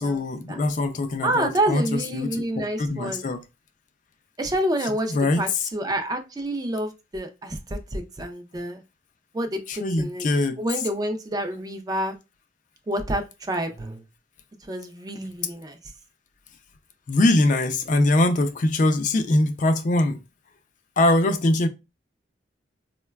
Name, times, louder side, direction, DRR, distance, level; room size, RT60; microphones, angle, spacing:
voice 1, 0.0-3.4 5.1-5.7 9.7-10.5 17.1-20.2 21.0-21.7, left 2 dB, 45° left, 0.4 m, -22 dB
voice 2, 1.2-3.3 4.4-8.8 9.3-10.2 10.6-12.2 12.9-14.0 14.7-15.8, right 1 dB, 20° right, 0.4 m, -28 dB
3.8 x 2.2 x 2.2 m
head